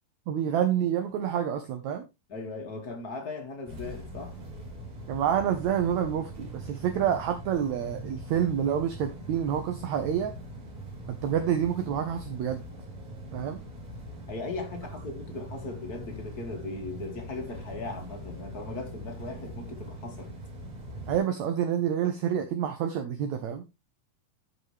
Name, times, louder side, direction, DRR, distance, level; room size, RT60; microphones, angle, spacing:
voice 1, 0.3-2.0 5.1-10.3 11.1-12.6 13.3-13.6 21.1-23.6, right 9 dB, 65° right, 1.9 m, -28 dB
voice 2, 2.3-4.4 14.3-20.3, left 3 dB, 35° left, 1.5 m, -38 dB
sound 1, 3.6-21.2, right 1 dB, 50° right, 4.5 m, -42 dB
14.0 x 5.4 x 3.2 m
omnidirectional pair, 4.3 m